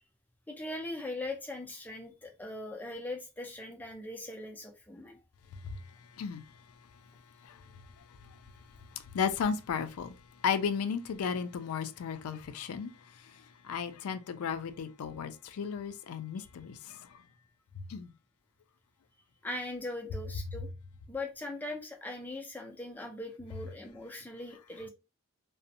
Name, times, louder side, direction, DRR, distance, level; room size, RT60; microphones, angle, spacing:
voice 1, 0.5-5.2 19.4-20.7 21.1-24.9, left 2 dB, 10° left, 0.4 m, -40 dB
voice 2, 9.1-10.2 10.4-12.9 13.6-17.0 17.9-18.1, left 6 dB, 80° left, 0.4 m, -34 dB
2.5 x 2.0 x 2.6 m
head